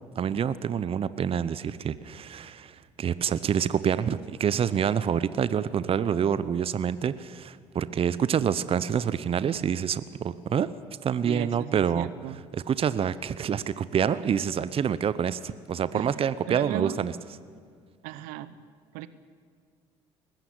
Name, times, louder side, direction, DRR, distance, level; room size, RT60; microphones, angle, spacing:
voice 1, 0.2-10.7 11.0-12.1 12.5-17.1, right 8 dB, 40° right, 16 dB, 0.8 m, -27 dB
voice 2, 11.2-12.4 15.9-16.2 16.5-17.0 18.0-18.6 18.9-19.1, right 13 dB, 70° right, 15 dB, 0.9 m, -36 dB
20.0 x 15.0 x 9.8 m, 2.1 s
hypercardioid pair, 60°, 14 cm